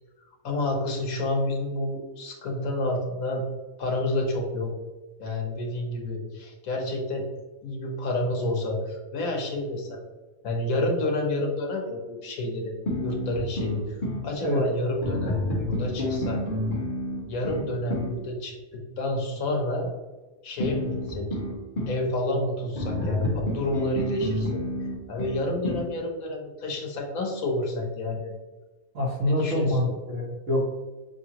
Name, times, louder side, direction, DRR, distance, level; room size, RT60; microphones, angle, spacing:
voice 1, 0.4-3.4 3.8-4.7 5.2-7.2 7.6-10.0 10.4-12.7 13.0-13.9 14.2-16.4 17.3-18.6 19.0-19.9 20.4-21.3 21.9-24.6 25.1-28.3 29.2-29.9, left 1 dB, 75° left, 1 dB, 1.4 m, -29 dB
sound 1, 12.9-14.3 15.0-18.2 20.6-22.0 22.7-25.9, left 1 dB, 40° left, 1.2 m, -29 dB
voice 2, 28.9-30.6, left 1 dB, 60° right, -3 dB, 1.6 m, -25 dB
6.6 x 2.7 x 2.9 m, 1.2 s
omnidirectional pair, 1.5 m